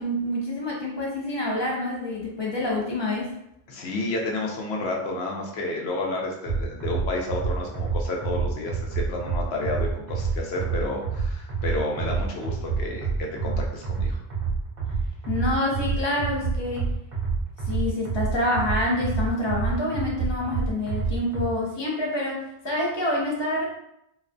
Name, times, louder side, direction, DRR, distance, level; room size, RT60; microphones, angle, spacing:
voice 1, 0.0-3.3 15.3-16.9 17.7-23.6, left 1 dB, 40° left, -3 dB, 0.4 m, -27 dB
voice 2, 3.7-14.2, left 2 dB, 90° left, 0 dB, 0.9 m, -31 dB
sound 1, 6.4-21.5, right 4 dB, 50° right, 0.8 m, -28 dB
2.4 x 2.2 x 2.5 m, 0.80 s
omnidirectional pair, 1.0 m